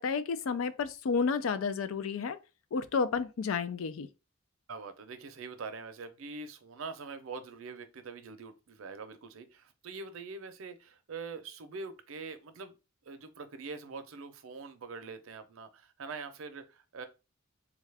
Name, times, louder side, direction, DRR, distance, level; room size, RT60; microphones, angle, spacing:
voice 1, 0.0-2.4 2.7-4.1, left 5 dB, 75° left, 0.4 m, -31 dB
voice 2, 4.7-12.8 13.1-17.1, right 4 dB, 75° right, 0.5 m, -44 dB
3.6 x 2.3 x 3.3 m
head